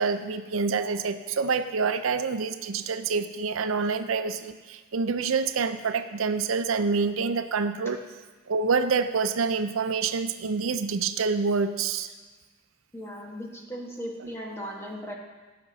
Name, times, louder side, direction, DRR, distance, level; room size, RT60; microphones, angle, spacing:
voice 1, 0.0-8.0 8.5-12.1 14.2-14.3, right 5 dB, 85° right, 10 dB, 0.5 m, -27 dB
voice 2, 12.9-15.2, equal, 10° left, -1 dB, 1.2 m, -37 dB
16.0 x 6.0 x 4.0 m, 1.3 s
head